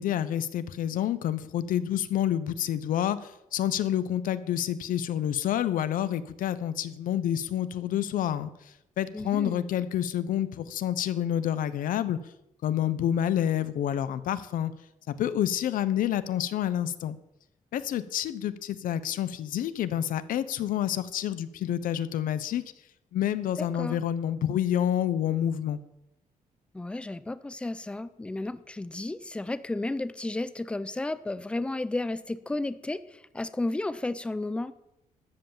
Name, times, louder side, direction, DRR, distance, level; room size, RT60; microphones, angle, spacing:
voice 1, 0.0-8.5 9.0-12.2 12.6-14.7 15.1-17.2 17.7-22.6 23.1-25.8, left 10 dB, 80° left, 14 dB, 0.8 m, -28 dB
voice 2, 9.1-9.6 23.6-24.0 26.7-34.7, left 2 dB, 10° left, 14 dB, 0.5 m, -33 dB
13.0 x 8.0 x 7.2 m, 0.88 s
wide cardioid pair, 175°, 14 cm